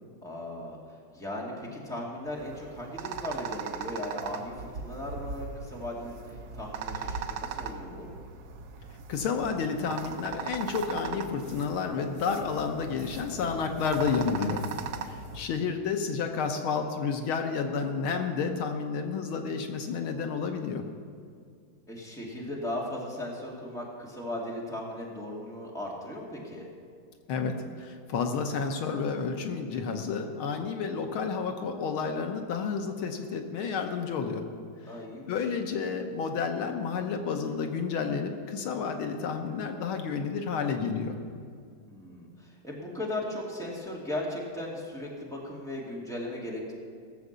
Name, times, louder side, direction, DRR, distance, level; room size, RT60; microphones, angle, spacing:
voice 1, 0.2-0.8 1.1-8.1 15.4-15.5 21.9-26.6 31.0-31.3 34.9-35.3 41.9-46.7, left 1 dB, ahead, -4 dB, 2.2 m, -37 dB
sound 1, 2.2-15.5, right 5 dB, 60° right, 1.1 m, -39 dB
voice 2, 9.1-14.6 15.1-20.8 27.3-34.4 35.3-41.2, left 5 dB, 80° left, 5 dB, 1.9 m, -30 dB
16.5 x 7.3 x 6.8 m, 2.3 s
omnidirectional pair, 2.3 m